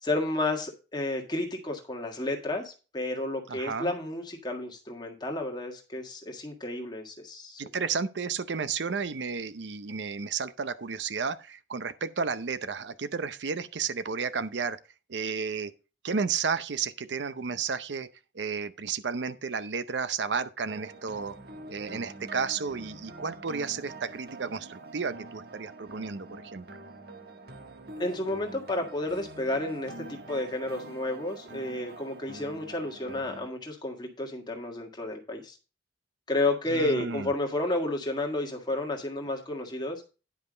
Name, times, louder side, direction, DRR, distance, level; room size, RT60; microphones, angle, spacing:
voice 1, 0.0-7.6 28.0-35.6 36.3-40.0, left 2 dB, 25° left, 1.7 m, -31 dB
voice 2, 3.5-3.9 7.6-14.8 15.1-15.7 16.0-18.1 18.3-21.3 21.7-26.6 36.7-37.3, right 5 dB, 80° right, 0.6 m, -32 dB
sound 1, 20.7-33.5, right 2 dB, 60° right, 1.3 m, -45 dB
10.0 x 5.4 x 5.0 m
head